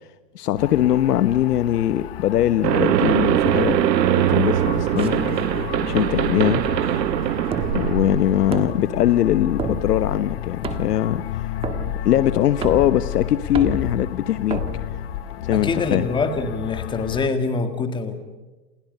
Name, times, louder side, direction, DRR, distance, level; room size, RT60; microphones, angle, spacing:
voice 1, 0.3-3.8 4.2-5.2 5.8-6.7 7.7-11.4 12.0-14.6 15.4-16.1, left 12 dB, 70° left, 12 dB, 1.2 m, -21 dB
sound 1, 0.6-17.3, left 12 dB, 40° left, 0.8 m, -32 dB
sound 2, 2.6-8.7, right 12 dB, 80° right, 1.1 m, -21 dB
sound 3, 5.0-15.6, right 4 dB, 10° right, 1.4 m, -34 dB
voice 2, 15.5-18.2, left 4 dB, 10° left, 7 dB, 2.0 m, -25 dB
29.5 x 27.5 x 5.5 m, 1.2 s
hypercardioid pair, 160°, 50 cm